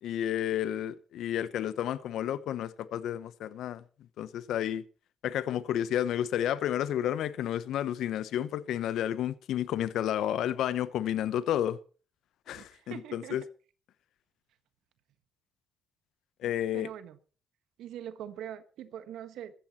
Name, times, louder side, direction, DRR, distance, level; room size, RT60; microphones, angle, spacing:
voice 1, 0.0-3.8 4.2-4.8 5.2-11.8 12.5-13.4 16.4-16.9, left 11 dB, 80° left, 0.9 m, -31 dB
voice 2, 12.5-13.4 16.4-17.2 17.8-19.5, right 10 dB, 85° right, 1.4 m, -43 dB
15.0 x 14.0 x 4.3 m
cardioid pair, 90°, 0 cm